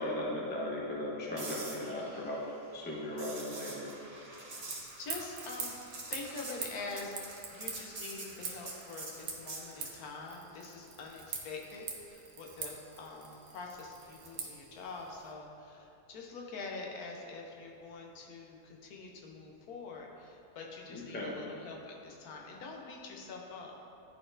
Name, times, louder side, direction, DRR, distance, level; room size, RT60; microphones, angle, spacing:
voice 1, 0.0-2.4 2.7-3.9 20.9-21.3, left 1 dB, 15° left, -4 dB, 0.3 m, -37 dB
sound 1, 1.4-10.0 14.2-14.4, right 2 dB, 35° right, 0.6 m, -46 dB
voice 2, 4.6-5.7 6.1-7.2 7.5-23.7, left 3 dB, 70° left, 0 dB, 1.2 m, -45 dB
sound 2, 4.6-15.3, right 5 dB, 75° right, 1.2 m, -45 dB
11.0 x 4.1 x 2.5 m, 2.7 s
omnidirectional pair, 1.7 m